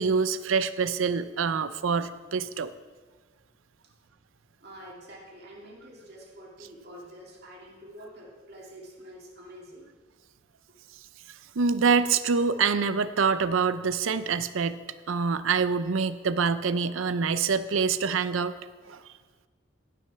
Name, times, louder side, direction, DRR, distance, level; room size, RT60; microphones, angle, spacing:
voice 1, 0.0-2.7 11.6-14.8 15.1-18.5 18.9-19.0, right 5 dB, 85° right, 13 dB, 0.5 m, -25 dB
voice 2, 4.6-10.0, equal, 55° right, -3 dB, 2.4 m, -47 dB
12.0 x 6.3 x 5.8 m, 1.4 s
head